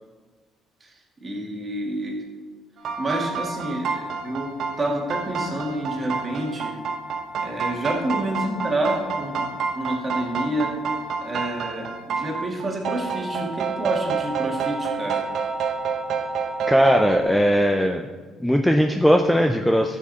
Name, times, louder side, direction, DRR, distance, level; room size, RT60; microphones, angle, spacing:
voice 1, 1.2-2.2 3.0-6.8 7.4-9.5 9.8-10.7 11.2-15.2, right 1 dB, 25° right, -1 dB, 2.4 m, -28 dB
sound 1, 2.8-17.2, right 5 dB, 60° right, 1.1 m, -28 dB
voice 2, 16.7-18.0 18.4-20.0, equal, 5° left, 4 dB, 0.5 m, -19 dB
13.5 x 7.5 x 4.3 m, 1.4 s
cardioid pair, 135°, 0 cm